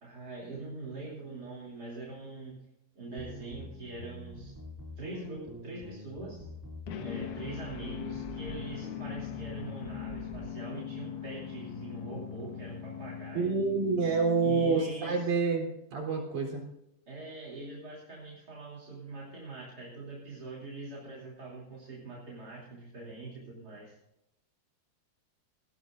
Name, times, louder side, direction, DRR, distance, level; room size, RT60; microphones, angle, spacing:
voice 1, 0.0-2.6 2.9-4.5 5.0-6.5 7.0-13.5 14.4-15.3 17.1-24.0, right 3 dB, 25° right, -4 dB, 3.1 m, -43 dB
sound 1, 3.2-10.5, equal, 10° right, 1.2 m, -46 dB
sound 2, 6.9-15.1, left 9 dB, 60° left, 2.6 m, -41 dB
voice 2, 13.3-16.7, right 4 dB, 50° right, 0 dB, 4.7 m, -28 dB
19.5 x 15.5 x 2.6 m, 0.83 s
omnidirectional pair, 4.6 m